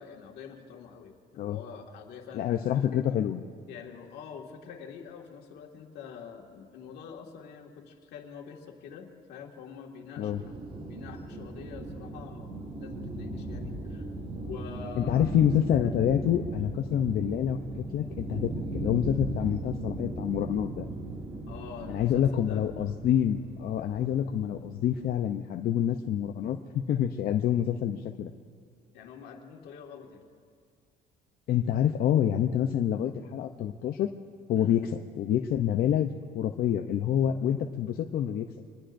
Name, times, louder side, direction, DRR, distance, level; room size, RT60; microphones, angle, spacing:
voice 1, 0.0-2.7 3.7-10.5 10.8-14.1 14.4-15.3 21.5-22.7 28.9-30.3 34.6-34.8, left 7 dB, 80° left, 1 dB, 2.0 m, -45 dB
voice 2, 2.3-3.4 10.2-10.4 15.0-20.9 21.9-28.3 31.5-34.1 34.5-34.9 35.2-38.5, left 10 dB, 60° left, 4 dB, 0.7 m, -27 dB
sound 1, 10.3-25.1, right 1 dB, 35° right, 2.4 m, -38 dB
26.5 x 20.0 x 2.6 m, 2.1 s
cardioid pair, 110°, 17 cm